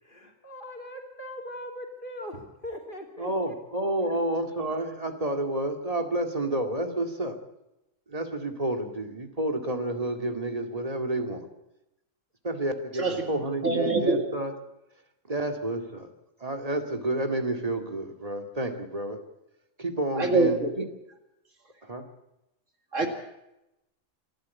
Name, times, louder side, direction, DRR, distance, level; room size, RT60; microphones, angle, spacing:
voice 1, 0.0-3.6 4.0-4.2, left 1 dB, 40° left, 2 dB, 3.3 m, -40 dB
voice 2, 3.2-7.4 8.1-11.5 12.4-14.5 15.3-16.1 16.4-19.2 19.8-20.8 21.8-22.0 23.0-23.1, right 1 dB, 30° right, 5 dB, 2.3 m, -30 dB
voice 3, 13.0-13.3 13.6-14.3 20.1-20.7 22.9-23.1, right 3 dB, 75° right, 5 dB, 2.4 m, -24 dB
27.5 x 11.5 x 8.4 m, 0.90 s
omnidirectional pair, 1.3 m